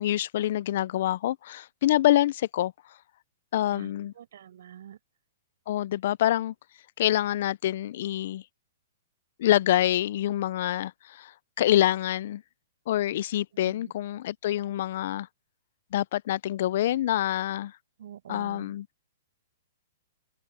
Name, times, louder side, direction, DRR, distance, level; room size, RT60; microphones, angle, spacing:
voice 1, 0.0-2.7 3.5-4.1 5.7-6.5 7.0-8.4 9.4-11.3 11.6-12.4 12.9-15.3 15.9-17.7 18.3-18.9, left 13 dB, 55° left, 0.5 m, -26 dB
voice 2, 3.7-5.0 13.6-13.9 18.0-18.7, right 10 dB, 70° right, 6.0 m, -46 dB
open air
hypercardioid pair, 145°, 0 cm